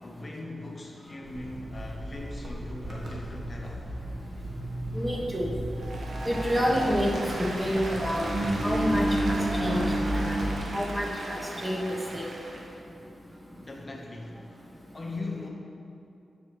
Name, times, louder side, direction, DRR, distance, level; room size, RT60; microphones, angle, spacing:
voice 1, 0.0-3.8 13.6-14.5 14.9-15.5, left 2 dB, 35° left, 0 dB, 0.7 m, -39 dB
Engine, 1.3-10.5, right 1 dB, 55° right, 1.4 m, -32 dB
voice 2, 4.9-5.5 6.2-7.1 7.4-8.3 8.6-10.4 10.7-11.8 12.1-12.3, equal, 15° right, -1 dB, 0.9 m, -28 dB
Applause, 5.7-12.7, right 1 dB, 80° right, 1.0 m, -38 dB
7.4 x 4.6 x 4.5 m, 2.6 s
wide cardioid pair, 100°, 0 cm